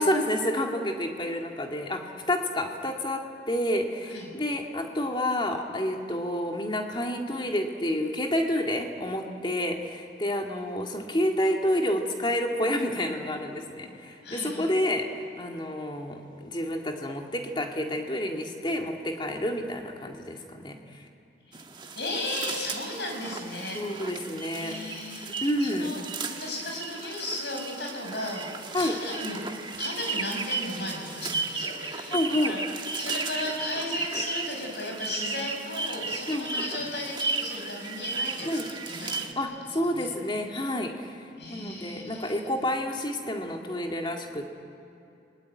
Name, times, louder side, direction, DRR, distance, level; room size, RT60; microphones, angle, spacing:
voice 1, 0.0-21.0 23.7-24.8 25.4-25.9 28.7-29.0 32.1-32.6 36.3-36.6 38.4-38.7 39.4-44.5, left 1 dB, 25° left, 2 dB, 2.0 m, -29 dB
voice 2, 14.2-14.7 21.5-21.6 22.0-24.2 24.6-26.0 26.4-29.4 29.7-32.6 32.9-39.1 39.9-40.1 41.4-42.4, left 1 dB, 65° left, 0 dB, 6.6 m, -35 dB
sound 1, 21.5-39.3, right 4 dB, 25° right, 1.4 m, -35 dB
30.0 x 20.0 x 9.4 m, 2.8 s
head